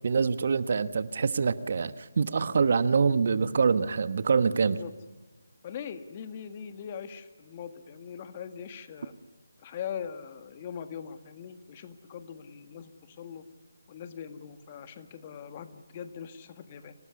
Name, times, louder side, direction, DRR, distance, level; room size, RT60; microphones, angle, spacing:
voice 1, 0.0-4.8, right 5 dB, 50° right, 13 dB, 1.2 m, -25 dB
voice 2, 5.6-9.1 9.6-13.4 13.9-16.9, left 8 dB, 30° left, 9 dB, 1.7 m, -41 dB
26.0 x 19.0 x 9.7 m, 1.1 s
figure-of-eight pair, 155°, 0 cm